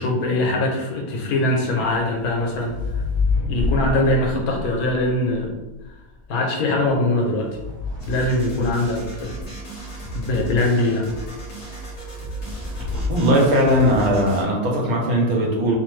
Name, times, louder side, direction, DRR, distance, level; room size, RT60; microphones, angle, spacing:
voice 1, 0.0-3.0 3.5-5.5 6.3-7.5 8.1-9.4 10.1-11.1, left 2 dB, 85° left, 0 dB, 1.2 m, -22 dB
sound 1, 1.8-5.9 6.9-9.2 12.5-13.4 13.8-14.2, left 4 dB, 50° right, 1.0 m, -28 dB
sound 2, 8.0-14.4, right 2 dB, 65° left, 1.1 m, -35 dB
voice 2, 13.1-15.8, equal, 80° right, -1 dB, 1.2 m, -19 dB
2.9 x 2.1 x 3.1 m, 1.1 s
omnidirectional pair, 1.5 m